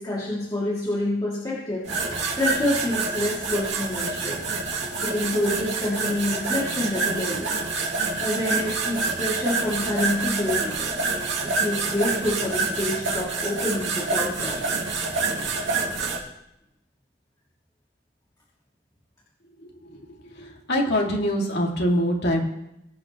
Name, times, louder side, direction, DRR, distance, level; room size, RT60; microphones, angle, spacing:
voice 1, 0.0-1.8 2.4-4.4 5.0-7.5 8.2-11.0 11.4-14.8, left 1 dB, 20° left, -8 dB, 2.6 m, -27 dB
sound 1, 1.9-16.2, right 4 dB, 85° right, 2.4 m, -27 dB
voice 2, 20.7-22.4, equal, 60° left, 0 dB, 2.3 m, -23 dB
21.5 x 8.7 x 3.1 m, 0.84 s
head